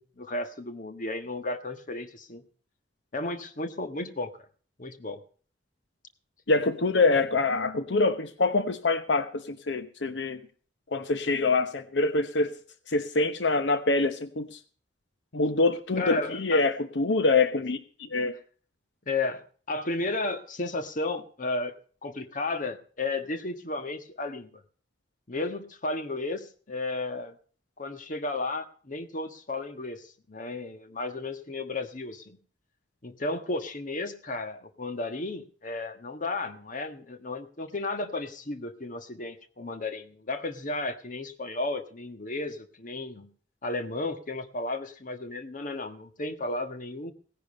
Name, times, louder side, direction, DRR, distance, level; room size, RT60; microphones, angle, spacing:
voice 1, 0.0-2.4 3.1-4.3 4.8-5.2 16.0-16.6 19.1-21.7 22.0-24.6 25.3-27.3 27.8-32.4 33.0-43.3 43.6-47.1, left 2 dB, 50° left, 8 dB, 1.4 m, -33 dB
voice 2, 6.5-10.4 10.9-12.5 12.9-14.6 15.3-18.4, left 3 dB, 75° left, 11 dB, 0.9 m, -25 dB
17.0 x 10.5 x 5.4 m, 0.43 s
head